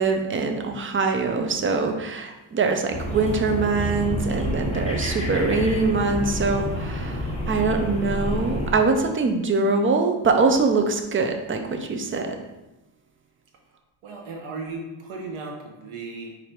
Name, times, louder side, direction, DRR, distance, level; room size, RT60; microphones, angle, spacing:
voice 1, 0.0-12.4, right 4 dB, 30° right, 5 dB, 0.4 m, -23 dB
sound 1, 2.9-8.7, equal, 15° left, 0.7 m, -28 dB
voice 2, 14.0-16.5, right 3 dB, 90° right, 0 dB, 0.8 m, -36 dB
4.7 x 2.6 x 4.3 m, 1.0 s
wide cardioid pair, 140°, 48 cm